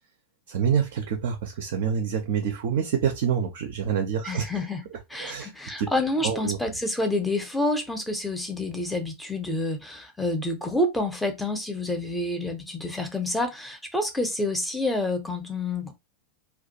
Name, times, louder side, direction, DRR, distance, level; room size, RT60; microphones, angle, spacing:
voice 1, 0.5-4.6 5.2-5.5 5.8-5.9 6.2-6.6, right 7 dB, 55° right, 0.4 m, -26 dB
voice 2, 4.2-4.8 5.1-15.9, left 2 dB, 5° left, 0.5 m, -28 dB
2.3 x 2.2 x 2.7 m
figure-of-eight pair, 90°, 0 cm